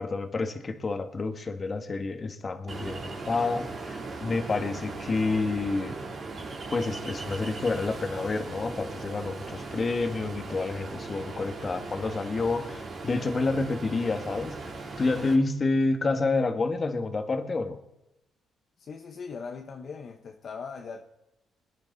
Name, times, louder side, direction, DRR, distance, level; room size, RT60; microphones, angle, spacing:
voice 1, 0.0-5.9 6.7-14.6 15.0-17.8, left 3 dB, 35° left, 1.5 m, -29 dB
Ocean, 2.7-15.3, right 3 dB, 50° right, 3.1 m, -38 dB
voice 2, 18.8-21.0, left 5 dB, 50° left, 1.0 m, -40 dB
21.5 x 10.5 x 4.0 m
cardioid pair, 90°, 0 cm